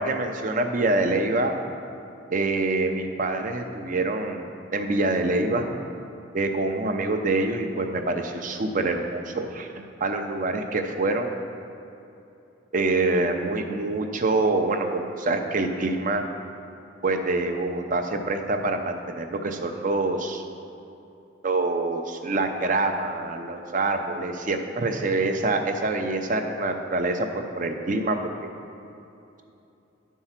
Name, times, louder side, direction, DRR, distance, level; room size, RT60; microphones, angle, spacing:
voice 1, 0.0-1.5 2.3-5.7 6.3-9.7 10.0-11.3 12.7-16.2 17.0-20.4 21.4-28.5, right 2 dB, 45° right, 5 dB, 0.6 m, -26 dB
10.5 x 4.6 x 5.8 m, 2.8 s
head